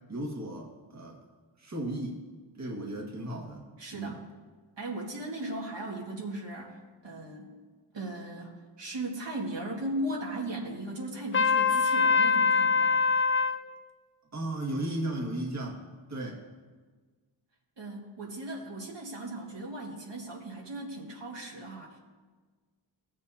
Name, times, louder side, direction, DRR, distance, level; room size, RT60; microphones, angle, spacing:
voice 1, 0.1-1.2 1.6-2.2 2.6-3.6 3.9-4.2 14.3-15.8 16.1-16.4, right 1 dB, 35° right, -2 dB, 1.8 m, -35 dB
voice 2, 3.8-4.2 4.8-7.5 7.9-13.1 17.8-22.0, right 1 dB, 70° right, -3 dB, 1.9 m, -37 dB
Trumpet, 11.3-13.6, left 5 dB, 30° left, 0.4 m, -23 dB
18.5 x 7.5 x 2.8 m, 1.4 s
wide cardioid pair, 85°, 45 cm